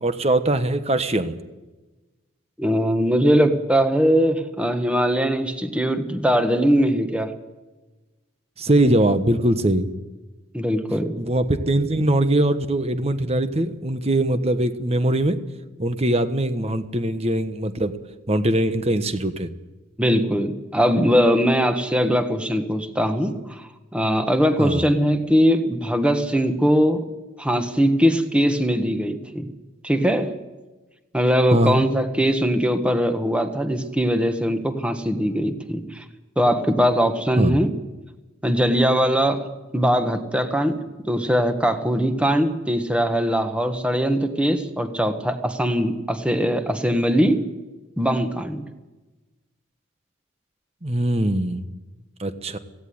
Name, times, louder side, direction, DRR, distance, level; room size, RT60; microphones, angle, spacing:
voice 1, 0.0-1.3 8.6-9.9 11.2-15.4 15.8-17.9 18.3-19.5 24.6-24.8 31.5-31.8 37.4-37.6 50.8-51.6 52.2-52.6, right 1 dB, 30° right, 10 dB, 1.2 m, -21 dB
voice 2, 2.6-7.3 10.5-11.1 20.0-27.0 27.4-29.5 29.8-30.3 31.1-36.0 36.4-37.7 38.4-39.4 39.7-40.8 41.1-47.4 48.0-48.6, equal, 5° right, 7 dB, 1.5 m, -21 dB
17.5 x 16.5 x 9.6 m, 1.1 s
head